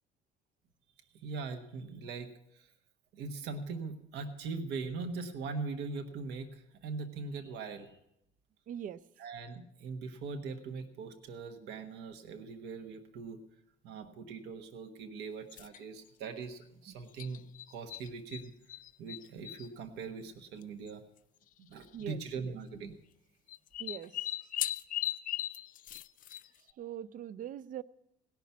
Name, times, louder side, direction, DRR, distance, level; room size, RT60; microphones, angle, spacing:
voice 1, 1.2-2.7 3.1-8.0 9.2-13.4 13.8-17.4 17.7-18.5 19.0-21.0 21.6-23.0, right 4 dB, 85° right, 1.2 m, -41 dB
voice 2, 8.7-9.0 16.9-17.0 21.9-22.6 23.8-24.3 26.8-27.8, right 9 dB, 50° right, 0.5 m, -42 dB
sound 1, 15.5-15.8 17.2-18.4 18.7-19.7 20.6-20.7 20.9-21.0 21.9-22.2 23.5-26.7, left 13 dB, 55° left, 0.4 m, -38 dB
17.0 x 5.9 x 8.3 m
cardioid pair, 110°, 17 cm